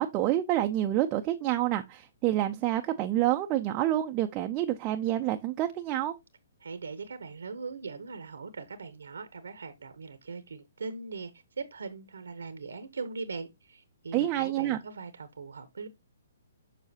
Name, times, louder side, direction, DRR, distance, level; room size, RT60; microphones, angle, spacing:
voice 1, 0.0-6.1 14.1-14.8, right 13 dB, 30° right, 0.5 m, -28 dB
voice 2, 6.6-11.3 11.6-15.9, right 4 dB, 80° right, 0.9 m, -40 dB
7.1 x 5.7 x 2.8 m
hypercardioid pair, 135°, 0 cm